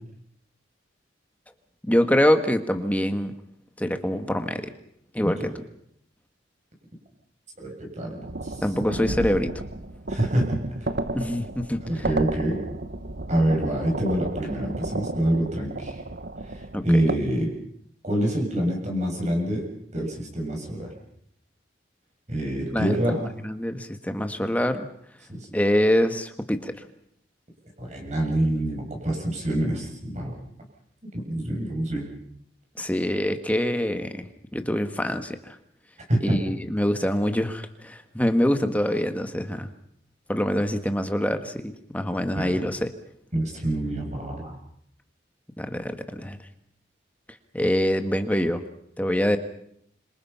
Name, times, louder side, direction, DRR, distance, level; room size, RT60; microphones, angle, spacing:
voice 1, 1.8-3.4 3.8-4.7 5.1-5.6 8.6-9.5 11.1-12.1 16.7-17.0 22.7-24.9 25.5-26.7 32.8-35.6 36.2-39.7 40.3-42.9 45.6-46.4 47.5-48.6 49.0-49.4, equal, 10° left, 7 dB, 1.7 m, -25 dB
voice 2, 7.6-8.6 10.1-10.9 11.8-12.6 13.3-16.0 16.4-17.5 18.0-19.7 19.9-20.9 22.3-23.2 25.3-25.5 27.8-30.3 31.1-32.1 36.1-36.4 42.4-42.6 43.3-44.6, right 1 dB, 40° right, 1 dB, 7.4 m, -26 dB
sound 1, 8.2-17.2, right 2 dB, 55° right, 1.2 m, -32 dB
27.5 x 26.5 x 5.8 m, 0.71 s
head